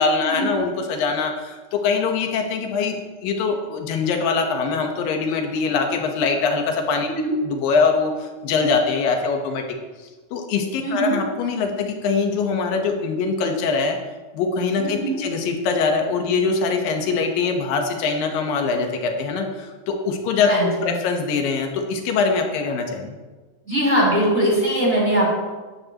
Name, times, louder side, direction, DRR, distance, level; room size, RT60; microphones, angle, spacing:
voice 1, 0.0-7.1 7.4-9.6 10.3-14.0 14.3-23.2, left 4 dB, 85° left, 3 dB, 3.0 m, -23 dB
voice 2, 10.8-11.2 14.8-15.2 20.4-20.9 23.6-25.4, right 1 dB, 5° left, -6 dB, 3.8 m, -21 dB
14.5 x 10.5 x 3.0 m, 1.3 s
omnidirectional pair, 3.9 m